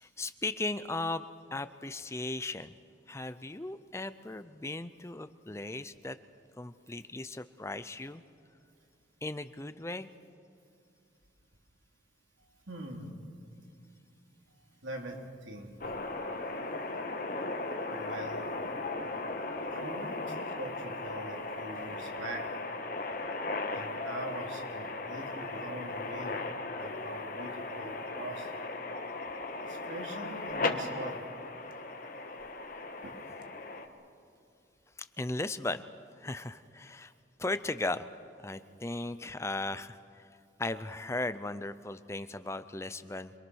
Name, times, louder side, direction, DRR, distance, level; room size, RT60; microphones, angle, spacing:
voice 1, 0.0-2.7 3.1-6.2 6.6-8.2 9.2-10.1 35.0-35.8 36.2-37.1 37.4-38.1 38.4-40.3 40.6-43.3, left 2 dB, 15° left, 12 dB, 0.5 m, -37 dB
voice 2, 12.7-13.3 14.8-15.9 17.9-18.7 19.7-22.4 23.7-26.4 26.8-28.5 29.6-31.2 33.0-33.2, right 1 dB, 90° right, 1 dB, 3.5 m, -43 dB
sound 1, 15.8-33.9, left 3 dB, 45° left, 1.5 m, -37 dB
27.0 x 22.0 x 6.3 m, 2.6 s
head